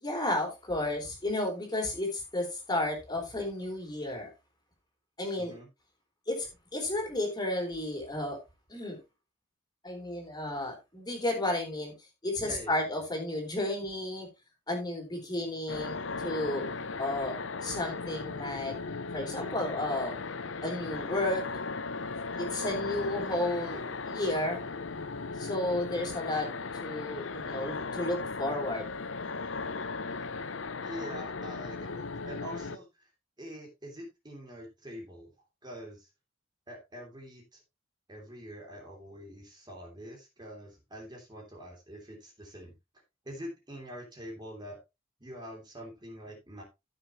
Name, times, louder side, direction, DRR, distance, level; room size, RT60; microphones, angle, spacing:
voice 1, 0.0-4.3 5.2-5.5 6.3-8.4 8.7-9.0 9.8-11.9 12.2-14.3 14.7-16.7 17.0-18.8 19.1-20.2 20.6-21.4 22.4-24.7 25.4-26.5 26.8-29.0, left 1 dB, 20° left, 1 dB, 3.8 m, -32 dB
voice 2, 5.4-5.7 12.4-12.9 30.8-33.1 33.4-35.3 35.6-36.1 36.7-37.6 38.1-42.7 43.2-44.8 45.2-46.6, equal, 20° right, 0 dB, 3.1 m, -45 dB
sound 1, 15.7-32.8, left 4 dB, 70° left, 0.7 m, -37 dB
15.0 x 6.7 x 3.0 m, 0.24 s
head